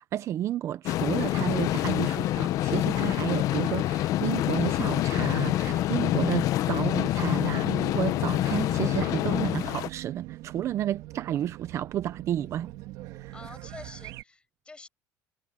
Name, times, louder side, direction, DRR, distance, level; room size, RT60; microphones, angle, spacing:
voice 1, 0.0-12.7, right 11 dB, 45° right, 0.6 m, -31 dB
sound 1, 0.9-9.9, left 14 dB, 60° left, 0.8 m, -26 dB
Race car auto racing / Alarm, 8.0-14.2, right 17 dB, 75° right, 2.9 m, -42 dB
voice 2, 13.3-14.9, left 3 dB, 15° left, 7.4 m, -47 dB
cardioid pair, 145°, 7 cm